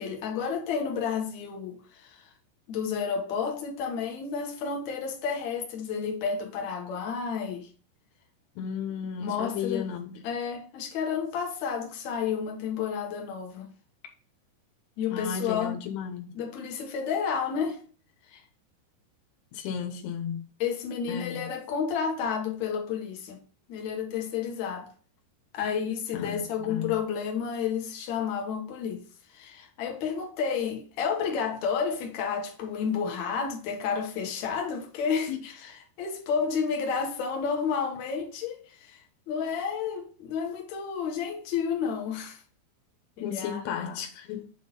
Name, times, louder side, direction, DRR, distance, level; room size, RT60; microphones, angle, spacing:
voice 1, 0.0-2.3 2.7-7.7 9.2-9.9 10.2-13.7 15.0-15.8 16.4-17.8 18.3-18.4 20.6-23.4 23.7-24.9 25.5-29.0 29.3-35.5 36.0-42.4 43.3-43.6, left 6 dB, 60° left, 2.0 m, -31 dB
voice 2, 8.6-10.2 15.1-16.5 19.5-20.5 21.1-21.5 26.1-27.0 35.3-35.4 43.2-44.5, left 8 dB, 80° left, 3.0 m, -34 dB
9.1 x 3.8 x 3.8 m
omnidirectional pair, 4.9 m